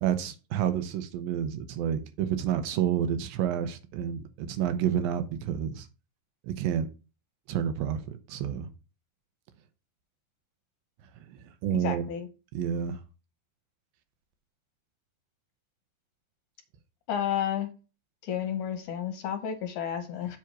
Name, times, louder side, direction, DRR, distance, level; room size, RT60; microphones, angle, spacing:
voice 1, 0.0-5.9 6.4-6.9 7.5-8.7 11.6-12.1 12.5-13.0, right 9 dB, 85° right, 2.5 m, -29 dB
voice 2, 11.7-12.3 17.1-17.7 18.2-20.4, left 9 dB, 70° left, 2.1 m, -31 dB
7.5 x 3.6 x 6.0 m
omnidirectional pair, 4.1 m